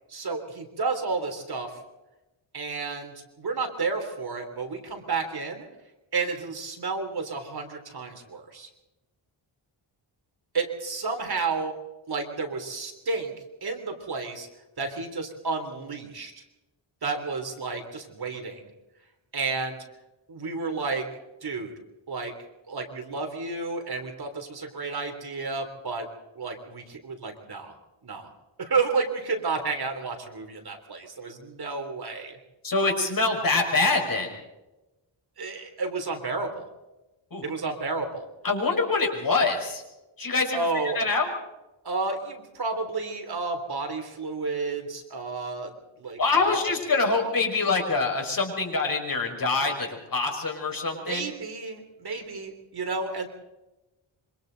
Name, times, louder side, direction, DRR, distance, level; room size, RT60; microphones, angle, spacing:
voice 1, 0.1-1.8 2.5-5.7 6.1-8.7 10.5-11.7 12.1-13.3 13.6-14.5 14.8-16.4 17.0-18.6 19.3-19.8 20.3-21.1 21.4-21.7 22.1-22.3 22.7-26.1 26.3-27.8 28.0-28.3 28.6-32.4 35.4-36.7 37.4-38.3 40.5-41.0 41.8-46.7 50.9-53.3, right 4 dB, 50° right, 4 dB, 3.4 m, -31 dB
voice 2, 32.6-34.3 37.3-37.4 38.4-39.8 40.2-40.6 40.9-41.3 46.2-51.3, left 3 dB, 40° left, 2 dB, 5.7 m, -25 dB
26.5 x 25.0 x 4.0 m, 1.0 s
wide cardioid pair, 130°, 50 cm